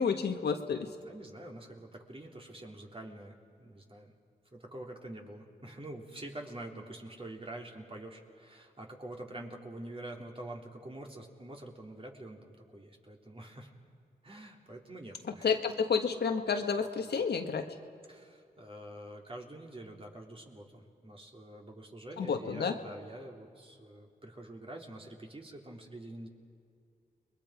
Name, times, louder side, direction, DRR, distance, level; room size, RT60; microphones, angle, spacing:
voice 1, 0.0-0.9 15.4-17.6 22.2-22.7, left 6 dB, 70° left, 5 dB, 1.6 m, -30 dB
voice 2, 1.1-4.1 4.5-13.7 14.2-15.6 18.1-26.3, right 1 dB, 30° right, 0 dB, 3.5 m, -46 dB
30.0 x 21.5 x 5.1 m, 2.3 s
cardioid pair, 50°, 17 cm